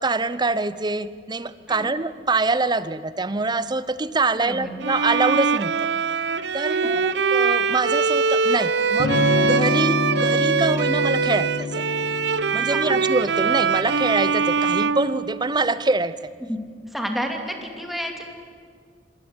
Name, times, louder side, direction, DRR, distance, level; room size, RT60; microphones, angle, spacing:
voice 1, 0.0-5.8 6.5-11.8 12.5-16.2, right 3 dB, 25° right, 16 dB, 0.7 m, -25 dB
voice 2, 4.4-4.8 6.7-6.9 12.7-13.0 16.5-16.6 16.9-18.3, equal, ahead, 3 dB, 2.5 m, -30 dB
Bowed string instrument, 4.8-15.8, right 5 dB, 75° right, 0.7 m, -23 dB
Electric guitar / Strum, 9.0-14.7, left 2 dB, 70° left, 2.8 m, -27 dB
26.5 x 19.0 x 8.0 m, 2.1 s
head